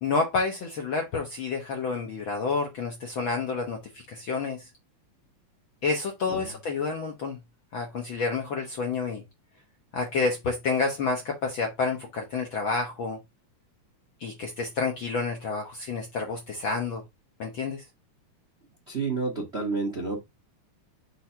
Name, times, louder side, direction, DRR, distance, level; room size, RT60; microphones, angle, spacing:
voice 1, 0.0-4.6 5.8-7.4 7.7-9.2 9.9-13.2 14.2-17.0 17.4-17.8, left 4 dB, 65° left, 1.3 m, -29 dB
voice 2, 18.9-20.2, right 4 dB, 45° right, 0.8 m, -30 dB
6.2 x 2.7 x 5.6 m
omnidirectional pair, 3.4 m